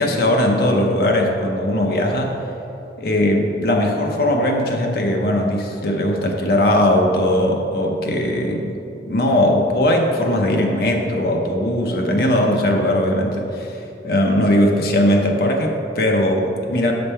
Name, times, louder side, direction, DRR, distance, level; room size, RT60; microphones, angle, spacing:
voice 1, 0.0-2.4 3.0-8.7 9.0-13.8 14.0-16.9, left 1 dB, 60° left, 1 dB, 0.7 m, -19 dB
7.9 x 5.2 x 4.3 m, 2.9 s
head